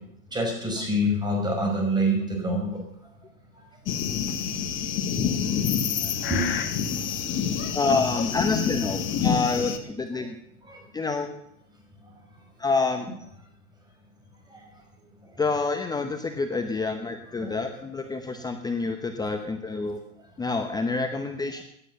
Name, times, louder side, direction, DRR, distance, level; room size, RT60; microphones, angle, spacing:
voice 1, 0.3-2.7 6.3-6.5 6.8-6.9 10.7-10.8, equal, 10° right, 1 dB, 5.3 m, -25 dB
sound 1, 3.9-9.8, left 7 dB, 25° left, 1.7 m, -27 dB
voice 2, 7.7-10.4 10.9-11.3 12.6-13.1 15.4-20.0 20.4-21.6, left 3 dB, 10° left, 6 dB, 0.9 m, -27 dB
17.0 x 11.0 x 6.9 m, 0.75 s
hypercardioid pair, 130°, 44 cm